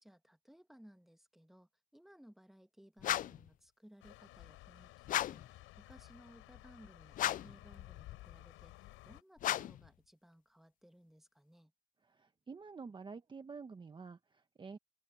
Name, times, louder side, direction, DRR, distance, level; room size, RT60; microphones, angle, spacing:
voice 1, 0.0-11.7, equal, ahead, 1.9 m, -61 dB
sound 1, 3.0-3.5 5.0-5.5 7.1-7.6 9.4-9.9, left 12 dB, 40° left, 0.4 m, -35 dB
sound 2, 4.0-9.2, left 18 dB, 75° left, 4.6 m, -55 dB
voice 2, 12.0-14.8, right 5 dB, 20° right, 1.2 m, -49 dB
open air
cardioid pair, 105°, 21 cm